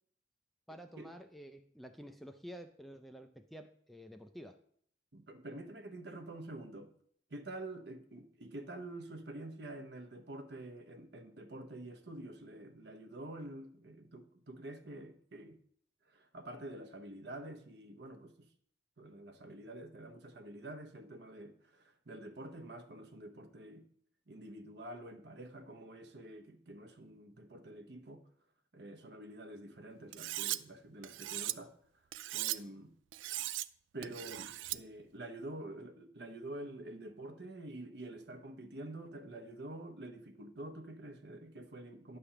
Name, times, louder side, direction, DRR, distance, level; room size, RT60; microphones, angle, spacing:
voice 1, 0.7-4.6, equal, ahead, 0.3 m, -50 dB
voice 2, 5.1-6.9 7.3-15.6 16.1-18.5 19.0-23.9 24.3-28.2 28.7-31.7 32.3-32.9 33.9-42.2, right 1 dB, 65° right, 0.9 m, -47 dB
Cutlery silverware, 30.1-30.6 31.0-31.5 32.1-32.6 33.1-33.7 34.0-34.8, right 15 dB, 90° right, 0.3 m, -38 dB
10.0 x 3.4 x 6.9 m
head